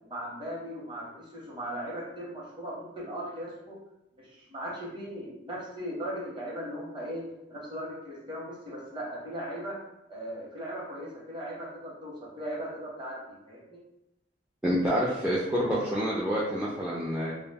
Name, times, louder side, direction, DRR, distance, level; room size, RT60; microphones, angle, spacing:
voice 1, 0.0-3.8 4.2-7.2 7.5-9.8 10.1-13.8, equal, 30° right, -4 dB, 0.8 m, -38 dB
voice 2, 14.6-17.3, equal, 5° right, -7 dB, 0.3 m, -27 dB
2.3 x 2.1 x 3.4 m, 0.87 s
head